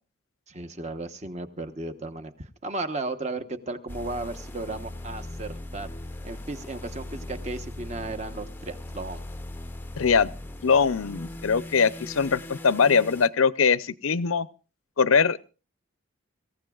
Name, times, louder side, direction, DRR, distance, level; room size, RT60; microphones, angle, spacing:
voice 1, 0.5-5.9 6.2-9.3, right 2 dB, 35° right, 8 dB, 1.1 m, -35 dB
sound 1, 3.9-13.3, left 1 dB, 10° left, 0.6 m, -39 dB
voice 2, 10.0-10.3 10.6-14.5 15.0-15.5, left 5 dB, 80° left, 17 dB, 0.6 m, -22 dB
26.0 x 15.0 x 2.4 m, 0.33 s
head